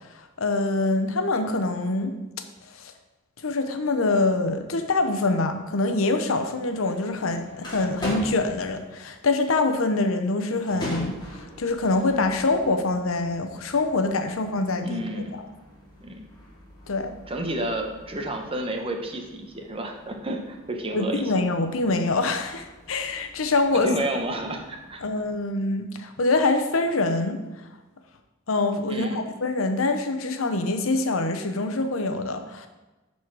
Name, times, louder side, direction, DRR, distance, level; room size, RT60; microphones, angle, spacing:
voice 1, 0.1-2.1 2.7-2.9 3.4-15.0 15.3-15.4 16.9-17.2 20.9-23.9 25.0-27.4 28.5-32.7, left 2 dB, 85° left, 7 dB, 0.8 m, -25 dB
sound 1, 6.7-25.3, left 1 dB, 20° left, 2.2 m, -42 dB
voice 2, 14.8-15.4 16.0-16.3 17.3-21.3 23.7-25.0 28.9-29.2, right 1 dB, 30° right, 3 dB, 0.9 m, -30 dB
10.5 x 4.2 x 4.8 m, 1.1 s
head